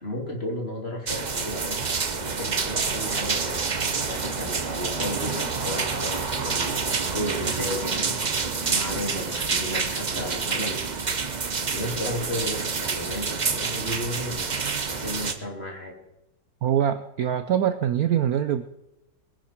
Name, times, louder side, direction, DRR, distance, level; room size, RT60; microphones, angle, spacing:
voice 1, 0.0-1.9 2.1-8.2 8.6-14.6 14.9-16.0, left 1 dB, 30° left, 0 dB, 3.1 m, -34 dB
sound 1, 1.1-15.3, right 5 dB, 65° right, 0.4 m, -28 dB
voice 2, 16.6-18.6, right 9 dB, 85° right, 10 dB, 0.8 m, -23 dB
21.5 x 10.5 x 4.5 m, 0.93 s
omnidirectional pair, 2.3 m